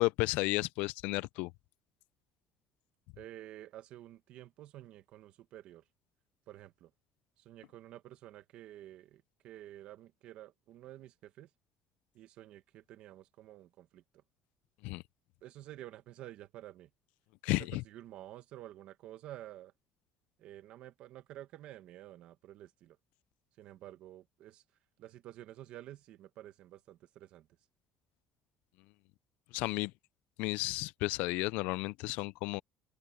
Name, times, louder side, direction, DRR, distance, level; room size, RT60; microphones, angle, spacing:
voice 1, 0.0-1.5 14.8-15.0 17.4-17.8 29.5-29.9 30.4-32.6, left 22 dB, 75° left, 0.3 m, -32 dB
voice 2, 3.2-5.8 6.5-6.9 7.4-11.5 12.1-14.0 15.4-16.9 17.5-19.7 20.4-23.0 23.6-24.6 25.0-27.5, right 13 dB, 50° right, 1.6 m, -50 dB
cardioid pair, 180°, 2 cm